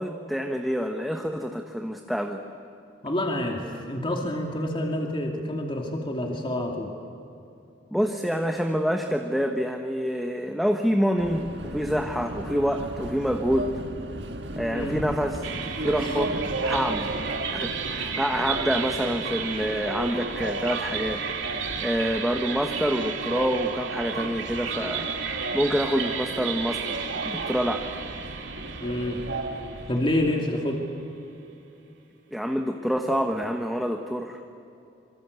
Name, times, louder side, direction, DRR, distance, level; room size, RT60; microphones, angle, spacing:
voice 1, 0.0-2.4 7.9-13.7 14.6-15.4 15.8-16.3 16.6-21.2 21.8-27.9 32.3-34.4, equal, ahead, 3 dB, 1.2 m, -27 dB
voice 2, 3.0-6.9 14.7-15.0 16.0-16.1 28.8-29.2 29.9-30.8, left 1 dB, 25° left, 1 dB, 2.6 m, -28 dB
Subway metro underground, 11.2-30.4, right 1 dB, 65° right, 1.7 m, -35 dB
sound 1, 15.4-30.7, right 7 dB, 90° right, 2.5 m, -33 dB
26.5 x 24.5 x 8.2 m, 2.7 s
head